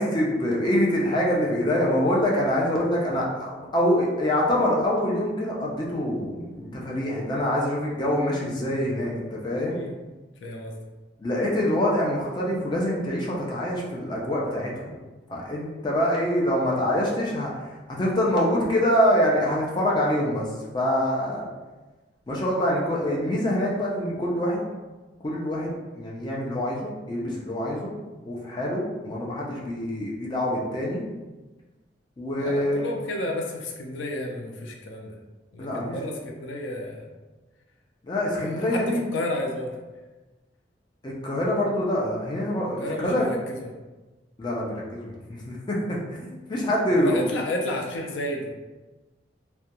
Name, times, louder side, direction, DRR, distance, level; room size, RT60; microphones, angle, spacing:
voice 1, 0.0-9.8 11.2-15.0 15.3-21.4 22.3-24.6 25.2-27.9 28.2-31.0 32.2-32.9 35.6-36.1 38.0-39.0 41.0-43.3 44.4-47.3, equal, 25° left, -4 dB, 0.4 m, -25 dB
voice 2, 10.4-10.7 32.4-35.1 35.5-37.1 38.4-39.7 42.8-43.8 46.9-48.5, left 1 dB, 90° left, 1 dB, 0.4 m, -32 dB
2.3 x 2.1 x 2.8 m, 1.2 s
head